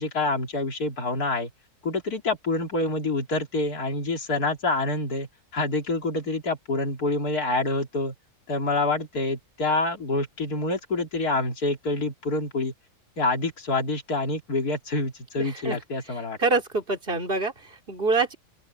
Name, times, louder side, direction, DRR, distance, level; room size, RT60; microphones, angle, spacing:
voice 1, 0.0-1.5 1.8-8.1 8.5-12.7 13.2-16.4, left 2 dB, 75° left, 3.5 m, -27 dB
voice 2, 15.4-15.8 16.4-18.3, right 3 dB, 35° right, 3.3 m, -26 dB
open air
omnidirectional pair, 1.6 m